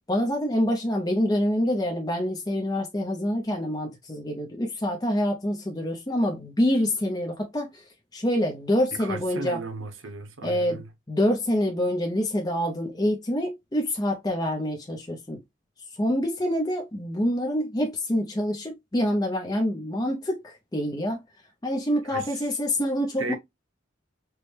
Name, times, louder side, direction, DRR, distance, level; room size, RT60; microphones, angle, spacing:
voice 1, 0.1-9.6 10.4-15.4 15.9-21.2 21.6-23.3, equal, 20° left, 0.6 m, -26 dB
voice 2, 9.0-10.9 22.1-22.2 23.2-23.3, right 3 dB, 90° right, 0.9 m, -35 dB
4.6 x 2.1 x 3.2 m
head